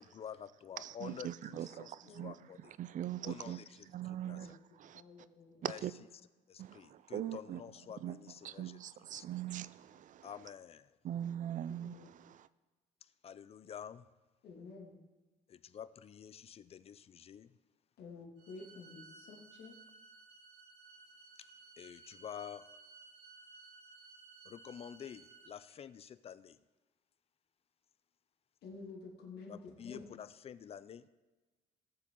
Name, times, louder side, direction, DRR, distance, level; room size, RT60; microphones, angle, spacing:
voice 1, 0.0-2.8 3.2-4.5 5.6-5.8 6.5-8.8 9.1-9.2 10.2-11.0 13.0-14.0 15.5-17.6 21.4-21.5 21.8-22.7 24.4-26.6 29.5-31.1, left 8 dB, 35° left, 0.5 m, -49 dB
voice 2, 0.8-2.4 2.8-3.6 3.9-5.0 5.6-5.9 6.6-7.6 8.0-8.2 8.4-10.3 11.0-12.5, right 11 dB, 50° right, 0.5 m, -41 dB
voice 3, 4.9-5.6 11.9-12.1 14.4-15.0 18.0-19.8 28.6-30.1, left 4 dB, 75° left, 2.3 m, -50 dB
sound 1, 18.4-25.5, right 4 dB, 75° right, 2.8 m, -57 dB
18.0 x 7.4 x 3.8 m
cardioid pair, 110°, 17 cm